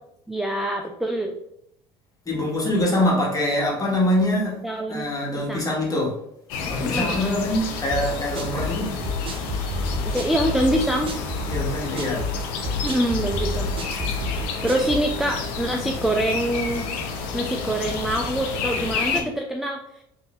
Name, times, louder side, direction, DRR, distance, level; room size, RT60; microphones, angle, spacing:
voice 1, 0.3-1.3 4.6-5.7 6.8-7.4 10.0-11.1 12.8-13.7 14.6-16.8 17.3-20.0, right 1 dB, ahead, 2 dB, 0.4 m, -25 dB
voice 2, 2.3-6.2 6.6-9.0 11.5-12.3, left 1 dB, 25° left, -3 dB, 1.5 m, -24 dB
sound 1, 6.5-19.2, left 4 dB, 75° left, 0.6 m, -30 dB
sound 2, 7.9-15.1, left 1 dB, 40° right, 0.8 m, -29 dB
3.8 x 2.7 x 2.4 m, 0.76 s
hypercardioid pair, 70°, 14 cm